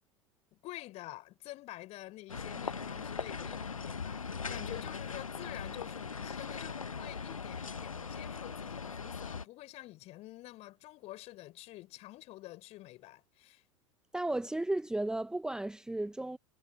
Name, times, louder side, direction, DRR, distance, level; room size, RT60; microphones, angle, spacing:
voice 1, 0.5-13.6, left 17 dB, 40° left, 6.0 m, -48 dB
sound 1, 2.3-9.4, left 5 dB, 80° left, 1.1 m, -40 dB
voice 2, 14.1-16.4, right 1 dB, 5° right, 1.2 m, -34 dB
figure-of-eight pair, 85°, 17 cm